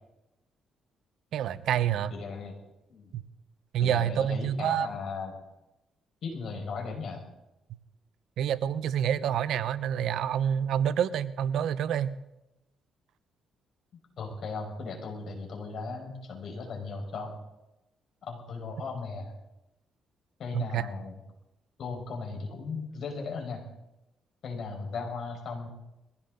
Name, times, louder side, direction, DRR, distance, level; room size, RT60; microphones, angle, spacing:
voice 1, 1.3-2.1 3.1-3.2 3.7-4.9 8.4-12.1 20.5-20.8, right 9 dB, 75° right, 15 dB, 0.8 m, -27 dB
voice 2, 2.1-2.5 2.9-3.1 3.8-5.4 6.2-7.3 14.2-17.4 18.2-19.4 20.4-21.2 21.8-23.7 24.4-25.7, left 4 dB, 60° left, 2 dB, 5.1 m, -37 dB
22.0 x 16.0 x 3.9 m, 0.93 s
cardioid pair, 90°, 0 cm